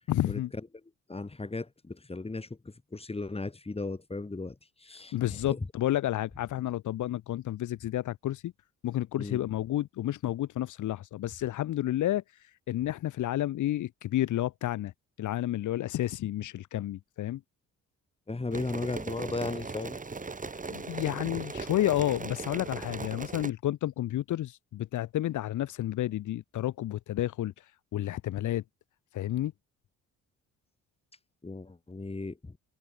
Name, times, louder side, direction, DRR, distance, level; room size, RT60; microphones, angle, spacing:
voice 1, 0.1-0.5 5.1-8.5 8.8-12.2 12.7-14.9 15.2-17.4 20.7-27.5 27.9-28.6 29.1-29.5, left 13 dB, 80° left, 2.5 m, -30 dB
voice 2, 1.1-5.6 9.2-9.4 18.3-20.0 31.4-32.6, left 3 dB, 20° left, 6.2 m, -36 dB
sound 1, 18.5-23.5, right 4 dB, 25° right, 7.5 m, -38 dB
cardioid pair, 90°, 30 cm